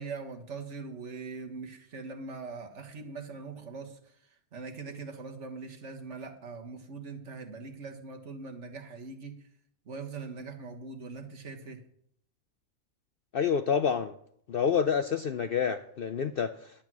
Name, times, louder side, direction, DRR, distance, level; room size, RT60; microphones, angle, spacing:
voice 1, 0.0-3.9 4.5-9.4 9.9-11.8, right 4 dB, 55° right, 4 dB, 1.7 m, -41 dB
voice 2, 13.3-14.1 14.5-16.5, left 7 dB, 65° left, 9 dB, 0.5 m, -28 dB
10.5 x 8.7 x 6.0 m, 0.67 s
omnidirectional pair, 1.5 m